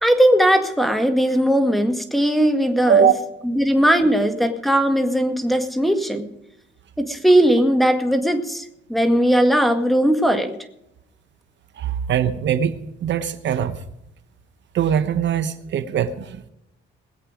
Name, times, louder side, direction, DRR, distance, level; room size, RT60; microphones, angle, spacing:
voice 1, 0.0-3.1 3.4-6.3 7.0-10.5, equal, ahead, 6 dB, 1.9 m, -18 dB
voice 2, 2.9-3.2 11.8-13.7 14.7-16.5, right 8 dB, 65° right, 11 dB, 1.1 m, -21 dB
21.0 x 8.3 x 5.1 m, 0.85 s
cardioid pair, 90°, 20 cm